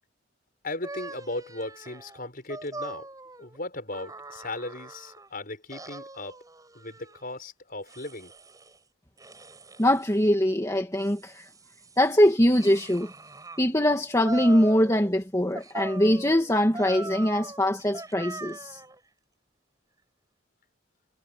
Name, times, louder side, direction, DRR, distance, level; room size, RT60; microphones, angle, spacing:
voice 1, 0.6-3.1 3.4-6.4 6.7-8.3, left 2 dB, 45° left, 7.3 m, -37 dB
sound 1, 0.8-5.3 5.7-7.2 7.9-8.8 9.2-10.2 10.8-13.6 14.2-15.2 15.5-19.0, right 2 dB, 20° right, 7.2 m, -42 dB
voice 2, 9.8-11.5 12.0-13.1 13.6-18.8, equal, 15° left, 2.0 m, -22 dB
head